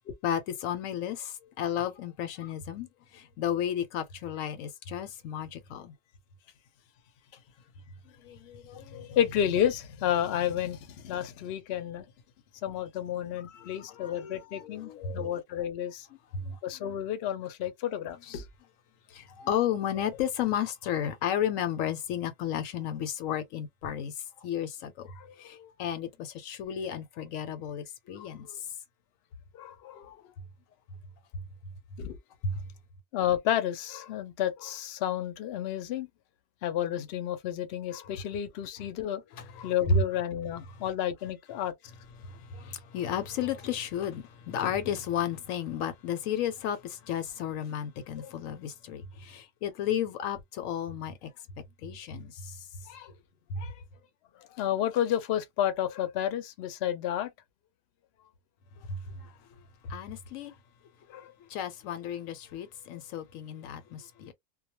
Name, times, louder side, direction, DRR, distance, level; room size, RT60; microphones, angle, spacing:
voice 1, 0.2-5.9 8.0-9.2 13.2-15.4 16.3-16.9 18.1-18.2 19.1-25.1 25.4-28.7 32.4-32.6 39.3-40.0 40.7-40.8 42.2-51.4 51.8-53.1 53.5-53.8 58.8-60.6 61.1-64.3, left 7 dB, 85° left, 1.0 m, -33 dB
voice 2, 8.7-12.1 12.6-16.1 16.6-18.4 25.2-25.7 28.2-28.3 29.5-30.2 32.0-32.2 33.1-36.1 36.6-39.2 39.6-41.7 48.2-48.3 54.5-57.3 61.1-61.3, left 10 dB, 60° left, 0.7 m, -31 dB
2.3 x 2.1 x 2.9 m
omnidirectional pair, 1.4 m